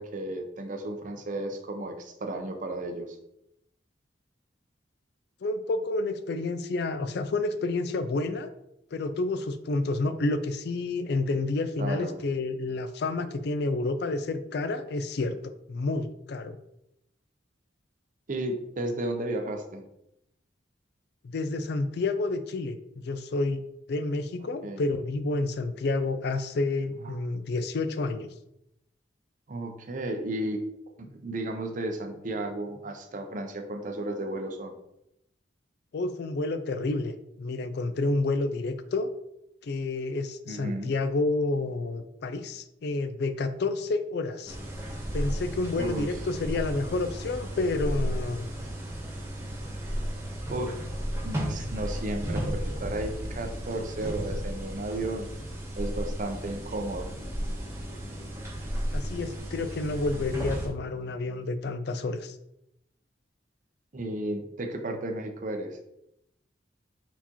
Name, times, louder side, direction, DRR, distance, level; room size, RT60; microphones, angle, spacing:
voice 1, 0.0-3.2 11.8-12.2 18.3-19.9 24.6-24.8 27.0-27.2 29.5-30.6 31.0-34.8 40.5-40.9 45.8-46.1 50.5-50.8 51.2-55.3 55.8-57.1 63.9-65.8, right 1 dB, 45° right, 5 dB, 0.6 m, -33 dB
voice 2, 5.4-8.5 8.9-16.6 21.2-23.6 23.9-28.3 35.9-39.1 39.6-44.6 45.1-48.5 58.9-62.4, left 3 dB, 60° left, 10 dB, 0.4 m, -29 dB
sound 1, 44.5-60.7, equal, 15° right, 0.9 m, -34 dB
4.3 x 4.1 x 2.9 m, 0.82 s
head